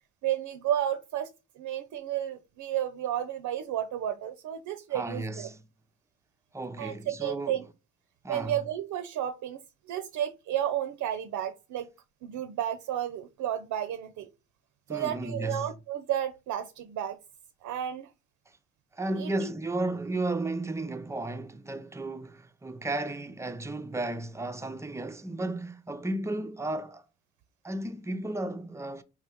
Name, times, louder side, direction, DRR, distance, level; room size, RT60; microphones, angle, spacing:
voice 1, 0.2-1.3 1.6-5.5 6.8-7.6 8.3-9.6 9.9-11.9 12.2-14.3 14.9-17.2 17.6-18.1 19.2-19.5, right 11 dB, 75° right, 0.6 m, -32 dB
voice 2, 4.9-5.6 6.5-7.6 8.2-8.6 14.9-15.7 18.9-27.0 27.6-29.0, right 2 dB, 10° right, 0.5 m, -34 dB
4.4 x 3.3 x 3.5 m
cardioid pair, 90°, 30 cm